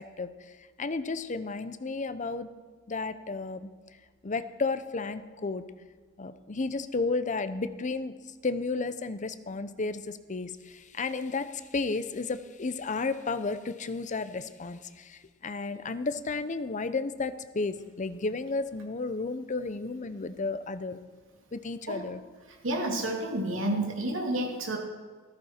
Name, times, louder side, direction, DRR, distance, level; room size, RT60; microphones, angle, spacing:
voice 1, 0.0-2.5 2.9-3.7 4.2-5.6 6.2-21.0 21.5-22.2, left 3 dB, 40° left, 12 dB, 0.7 m, -33 dB
voice 2, 22.6-24.8, right 1 dB, 70° right, 0 dB, 2.7 m, -30 dB
14.0 x 13.5 x 4.4 m, 1.4 s
head